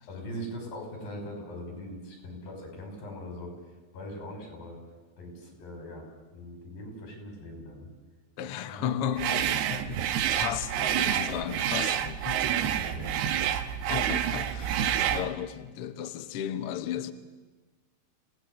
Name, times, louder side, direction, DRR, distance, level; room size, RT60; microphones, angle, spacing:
voice 1, 0.1-4.8 5.2-6.0 6.3-7.9 8.7-8.9 9.9-10.0 12.5-13.4, equal, 60° left, 7.2 m, -41 dB
voice 2, 8.4-12.5 13.9-17.1, left 9 dB, 90° left, 1.2 m, -34 dB
sound 1, 9.2-15.3, right 10 dB, 90° right, 3.0 m, -28 dB
27.5 x 17.5 x 8.0 m
omnidirectional pair, 4.5 m